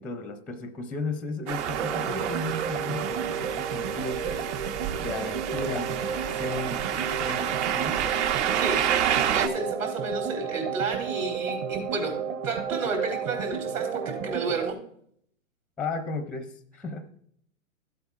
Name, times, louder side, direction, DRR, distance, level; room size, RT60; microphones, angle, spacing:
voice 1, 0.0-4.5 5.0-8.0 15.8-17.2, left 3 dB, 5° left, 9 dB, 0.5 m, -35 dB
sound 1, 1.5-9.5, right 9 dB, 60° right, 0.9 m, -29 dB
sound 2, 1.7-14.7, right 7 dB, 30° right, 0.8 m, -32 dB
voice 2, 9.3-12.2 12.4-14.8, right 3 dB, 80° right, -1 dB, 4.6 m, -31 dB
15.0 x 8.4 x 2.4 m, 0.65 s
hypercardioid pair, 125°, 40 cm